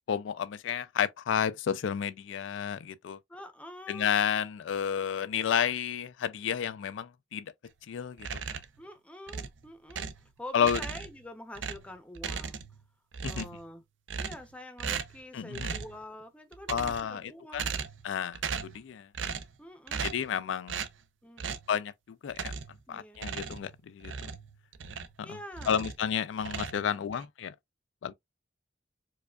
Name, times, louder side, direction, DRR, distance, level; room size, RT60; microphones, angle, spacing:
voice 1, 0.1-3.2 3.9-7.5 7.9-8.4 10.5-10.8 13.2-13.5 15.3-15.8 16.7-17.7 18.0-19.1 20.0-20.8 21.7-21.9 22.2-22.5 22.9-24.1 25.2-25.4 25.7-27.5 28.0-28.1, left 8 dB, 85° left, 0.4 m, -31 dB
voice 2, 3.3-4.1 8.8-10.1 10.4-12.6 13.2-13.8 14.2-17.8 19.6-20.1 21.2-21.5 22.9-23.2 25.2-25.8, left 1 dB, 5° left, 0.6 m, -46 dB
sound 1, 8.2-8.8 9.3-10.3 10.6-11.2 11.5-12.8 13.1-13.6 14.1-14.5 14.8-15.2 15.5-16.0 16.5-17.2 17.5-18.1 18.3-18.8 19.1-19.5 19.9-20.3 20.7-21.0 21.4-21.7 22.3-22.8 23.1-25.2 25.5-26.0 26.4-27.2, right 6 dB, 90° right, 0.5 m, -37 dB
4.7 x 2.3 x 2.2 m
head